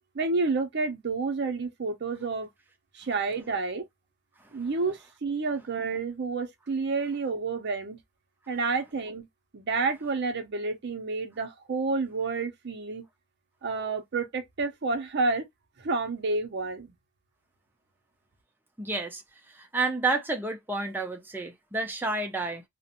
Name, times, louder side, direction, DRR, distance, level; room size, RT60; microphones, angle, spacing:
voice 1, 0.1-2.5 2.9-3.8 4.5-8.0 8.5-9.3 9.5-13.0 13.6-15.4 15.8-17.0, right 3 dB, 55° right, 0.6 m, -29 dB
voice 2, 18.8-19.2 19.5-22.6, right 3 dB, 10° right, 0.5 m, -30 dB
2.4 x 2.1 x 2.8 m
head